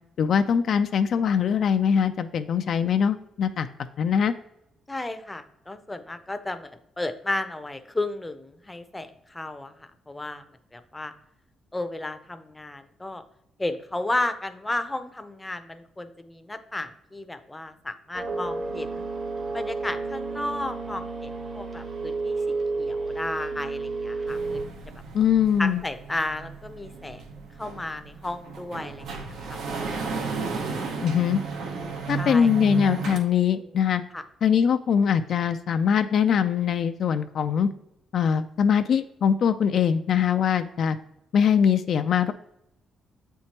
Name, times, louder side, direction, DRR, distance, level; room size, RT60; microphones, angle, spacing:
voice 1, 0.2-4.3 25.1-25.8 31.0-31.4 32.1-34.0 34.4-37.7 38.1-41.0 41.3-42.3, left 7 dB, 60° left, 9 dB, 0.3 m, -22 dB
voice 2, 4.9-6.7 7.0-10.4 10.7-11.1 11.7-13.2 13.6-19.1 19.5-22.3 22.8-24.6 25.6-29.6 32.2-32.5 33.1-33.2 34.1-34.2, left 2 dB, 15° left, 9 dB, 0.5 m, -33 dB
sound 1, 18.1-24.6, right 3 dB, 45° right, 1.1 m, -31 dB
sound 2, 24.3-33.2, right 5 dB, 80° right, 0.9 m, -34 dB
7.5 x 4.5 x 2.9 m, 0.82 s
cardioid pair, 90°, 0 cm